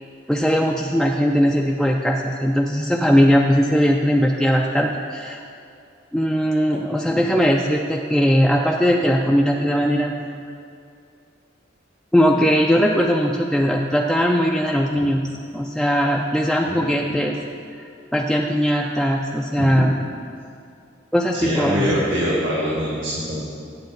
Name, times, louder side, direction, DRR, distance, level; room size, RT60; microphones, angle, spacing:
voice 1, 0.3-5.4 6.1-10.4 12.1-15.3 15.5-17.3 18.1-19.9 21.1-21.9, equal, ahead, -1 dB, 0.3 m, -19 dB
voice 2, 21.3-23.4, equal, 85° right, -8 dB, 1.8 m, -23 dB
7.9 x 7.9 x 5.1 m, 2.5 s
head